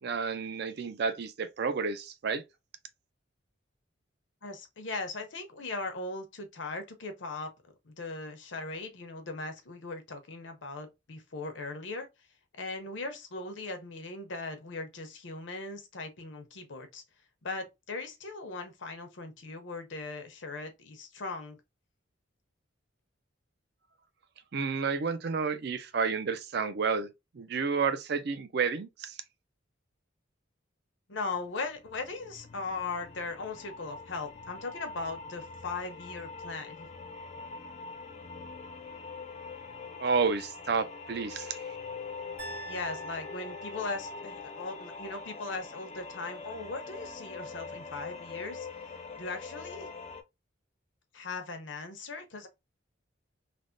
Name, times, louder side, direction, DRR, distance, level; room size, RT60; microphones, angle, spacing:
voice 1, 0.0-2.4 24.5-27.1 27.3-29.2 40.0-41.8, right 5 dB, 55° right, 0.4 m, -30 dB
voice 2, 4.4-7.5 7.8-12.1 12.6-17.0 17.4-21.6 31.1-36.9 42.7-48.7 49.2-49.9 51.1-52.5, left 3 dB, 70° left, 0.7 m, -39 dB
sound 1, 31.3-50.2, left 4 dB, 35° left, 0.3 m, -44 dB
sound 2, 42.4-44.5, right 1 dB, 70° right, 1.4 m, -45 dB
3.3 x 2.1 x 2.5 m
head